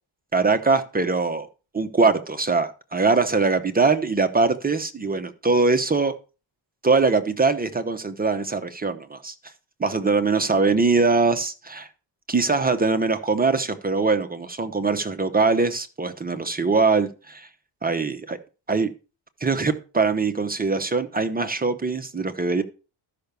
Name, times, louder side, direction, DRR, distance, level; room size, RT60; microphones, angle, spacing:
voice 1, 0.3-1.5 1.7-6.1 6.8-9.3 9.8-11.9 12.3-17.5 17.8-18.4 18.7-18.9 19.4-22.6, right 4 dB, 20° right, 8 dB, 0.8 m, -22 dB
13.0 x 5.9 x 6.7 m, 0.33 s
wide cardioid pair, 180°, 47 cm